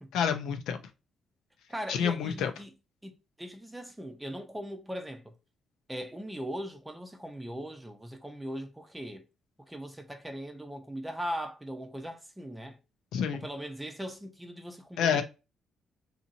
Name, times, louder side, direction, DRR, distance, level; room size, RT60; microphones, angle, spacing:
voice 1, 0.1-0.8 1.9-2.5 13.1-13.4 15.0-15.2, left 7 dB, 85° left, 0.5 m, -28 dB
voice 2, 1.7-2.7 3.0-5.3 5.9-9.2 9.6-12.8 13.3-15.2, equal, 10° right, 0.6 m, -39 dB
2.8 x 2.7 x 2.5 m
cardioid pair, 90°, 0 cm